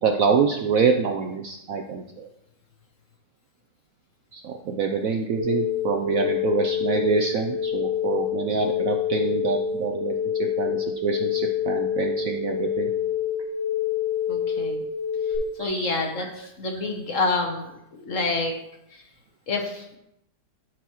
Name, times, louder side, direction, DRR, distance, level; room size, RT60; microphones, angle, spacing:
voice 1, 0.0-2.3 4.3-10.2 10.6-12.9 15.6-16.3, right 5 dB, 70° right, 3 dB, 0.8 m, -26 dB
sound 1, 5.4-15.4, left 8 dB, ahead, 3.1 m, -27 dB
voice 2, 14.3-14.8 15.3-18.5 18.9-19.0 19.5-20.0, left 3 dB, 55° left, 2 dB, 1.1 m, -28 dB
13.0 x 4.7 x 3.0 m, 0.83 s
omnidirectional pair, 1.9 m